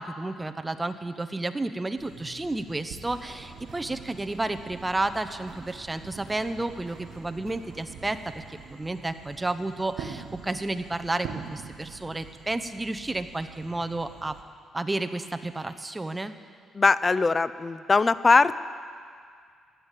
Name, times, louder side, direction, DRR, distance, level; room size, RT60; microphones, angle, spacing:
voice 1, 0.0-14.3 14.7-16.3, right 2 dB, 15° right, 8 dB, 0.9 m, -31 dB
sound 1, 2.0-14.4, right 6 dB, 85° right, 1.3 m, -45 dB
sound 2, 3.1-9.0, right 3 dB, 45° right, 3.1 m, -50 dB
voice 2, 16.7-18.6, left 4 dB, 30° left, 16 dB, 0.5 m, -21 dB
15.5 x 10.5 x 8.4 m, 2.1 s
cardioid pair, 90°, 0 cm